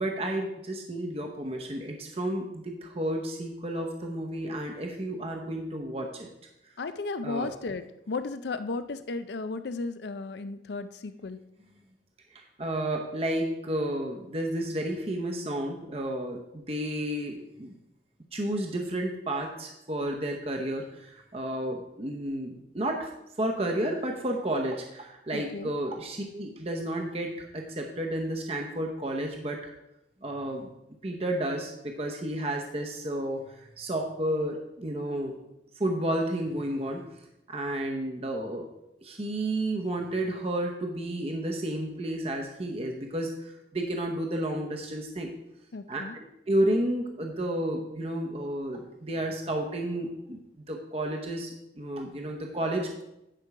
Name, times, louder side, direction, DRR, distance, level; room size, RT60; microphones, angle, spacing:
voice 1, 0.0-6.3 7.2-7.5 12.3-17.8 18.3-23.1 23.4-29.7 30.2-30.7 31.0-35.4 35.8-37.0 37.5-38.7 39.0-45.3 45.9-46.0 46.5-50.4 50.7-53.0, right 1 dB, 35° right, 2 dB, 0.9 m, -31 dB
voice 2, 6.8-11.4 25.3-25.7 45.7-46.1, left 3 dB, 70° left, 12 dB, 0.5 m, -34 dB
10.0 x 5.3 x 4.8 m, 0.86 s
head